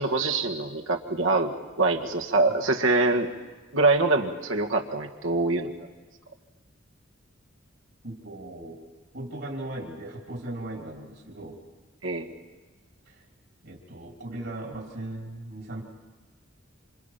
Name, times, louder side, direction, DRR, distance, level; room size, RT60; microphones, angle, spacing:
voice 1, 0.0-3.3 3.7-5.7 12.0-12.3, right 3 dB, 85° right, 2 dB, 1.8 m, -24 dB
voice 2, 8.0-8.8 9.1-11.6 13.1-13.2 13.6-15.8, right 1 dB, 70° right, 0 dB, 3.3 m, -38 dB
27.0 x 26.0 x 5.8 m, 1.3 s
head